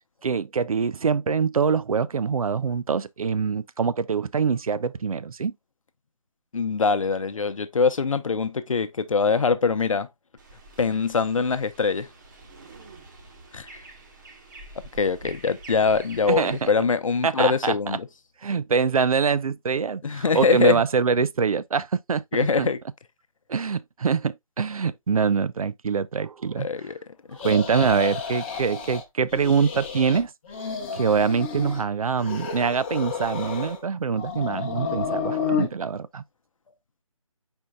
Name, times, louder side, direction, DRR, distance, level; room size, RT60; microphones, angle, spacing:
voice 1, 0.2-5.5 16.3-16.7 17.2-18.0 18.4-22.2 22.6-22.7 23.5-26.7 27.4-30.3 30.6-36.2, right 5 dB, 80° right, 0.4 m, -24 dB
voice 2, 6.5-10.1 10.8-12.1 13.5-13.7 14.9-18.1 20.0-20.8 22.3-22.8 26.6-27.0 27.3-27.4, left 5 dB, 65° left, 0.7 m, -23 dB
sound 1, 10.4-16.7, right 2 dB, 35° right, 1.0 m, -46 dB
sound 2, 27.4-29.0 29.3-30.2 30.5-31.8 32.2-33.8 34.1-35.7, left 6 dB, 20° left, 0.9 m, -31 dB
5.0 x 4.4 x 2.2 m
figure-of-eight pair, 155°, 18 cm